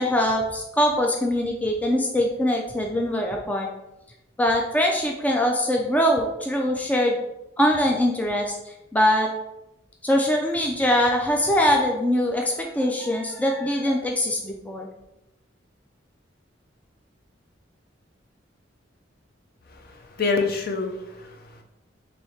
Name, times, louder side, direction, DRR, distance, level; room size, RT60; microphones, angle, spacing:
voice 1, 0.0-3.7 4.4-7.2 7.6-9.3 10.0-14.9, left 1 dB, 10° left, 0 dB, 0.3 m, -22 dB
voice 2, 19.7-21.6, left 4 dB, 55° left, 4 dB, 0.6 m, -27 dB
3.2 x 2.7 x 4.2 m, 0.91 s
head